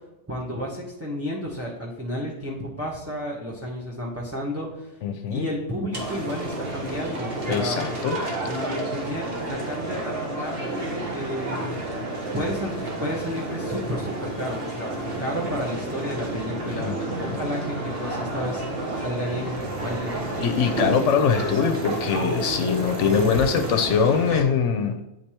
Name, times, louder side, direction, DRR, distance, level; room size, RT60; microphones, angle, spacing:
voice 1, 0.3-5.0 5.3-7.8 8.5-11.8 12.3-14.9 15.2-18.6 19.0-20.2, equal, 15° right, -4 dB, 1.0 m, -32 dB
voice 2, 5.0-5.5 7.5-8.2 16.7-17.4 20.4-25.0, left 6 dB, 75° left, 7 dB, 0.9 m, -23 dB
sound 1, 5.9-24.4, right 1 dB, 50° right, 1.4 m, -30 dB
8.9 x 3.3 x 4.3 m, 0.90 s
omnidirectional pair, 1.3 m